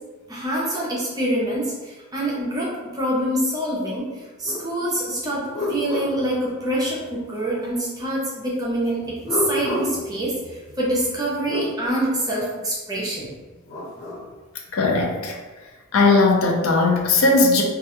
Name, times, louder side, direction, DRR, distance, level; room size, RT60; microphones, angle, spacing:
voice 1, 0.3-13.3, right 1 dB, 15° right, -4 dB, 0.4 m, -26 dB
sound 1, 4.4-4.6 5.1-7.1 9.0-11.7 13.4-14.2, left 1 dB, 35° left, 1.1 m, -31 dB
voice 2, 14.7-15.3 15.9-17.6, left 3 dB, 65° left, 0 dB, 0.4 m, -18 dB
2.3 x 2.2 x 2.8 m, 1.2 s
head